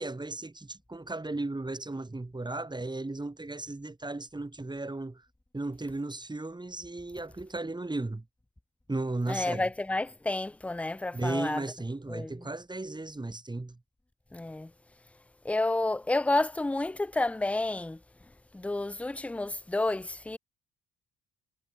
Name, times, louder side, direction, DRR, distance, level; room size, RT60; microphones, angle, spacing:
voice 1, 0.0-5.2 5.5-8.2 8.9-9.7 11.1-13.8, right 2 dB, 15° right, 2.8 m, -35 dB
voice 2, 9.3-11.6 12.1-12.5 14.3-14.7 15.4-18.0 18.5-20.4, left 2 dB, 5° left, 0.4 m, -30 dB
cardioid pair, 90°, 30 cm